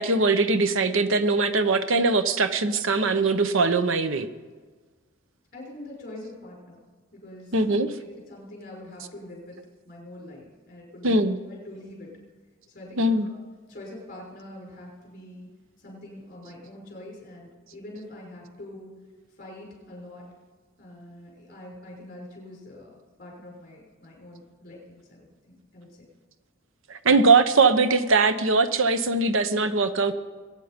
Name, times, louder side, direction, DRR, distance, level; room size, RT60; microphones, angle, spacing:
voice 1, 0.0-4.3 7.5-7.9 11.0-11.4 13.0-13.3 27.0-30.1, right 3 dB, 70° right, 11 dB, 0.8 m, -21 dB
voice 2, 5.5-6.8 7.1-9.6 9.9-11.2 11.5-12.1 12.7-13.4 13.7-15.5 15.8-18.9 19.4-20.3 20.8-25.3 25.7-26.1, left 1 dB, 45° left, -2 dB, 5.9 m, -44 dB
22.5 x 9.3 x 5.1 m, 1.4 s
head